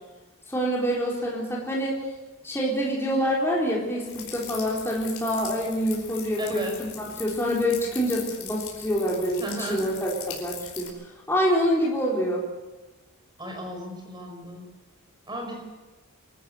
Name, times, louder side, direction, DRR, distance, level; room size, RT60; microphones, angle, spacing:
voice 1, 0.5-2.0 2.4-6.7 6.9-10.9 11.3-12.4, equal, 10° left, -5 dB, 4.0 m, -26 dB
sound 1, 4.1-10.9, left 8 dB, 65° left, 5.0 m, -40 dB
voice 2, 6.4-6.8 9.4-9.8 13.4-14.7 15.3-15.6, right 1 dB, 20° right, 1 dB, 5.8 m, -34 dB
25.0 x 14.0 x 8.0 m, 1.2 s
head